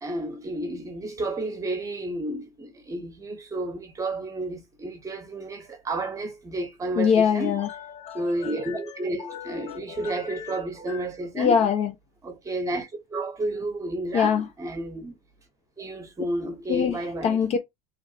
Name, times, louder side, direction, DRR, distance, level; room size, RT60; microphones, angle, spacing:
voice 1, 0.0-7.6 8.1-11.7 12.2-15.1 15.8-17.4, right 2 dB, 20° right, 1.2 m, -31 dB
voice 2, 7.0-8.8 9.2-10.6 10.9-11.0 11.4-11.9 14.1-14.5 16.7-17.6, left 7 dB, 35° left, 0.6 m, -25 dB
3.2 x 2.5 x 4.0 m
supercardioid pair, 130°, 18 cm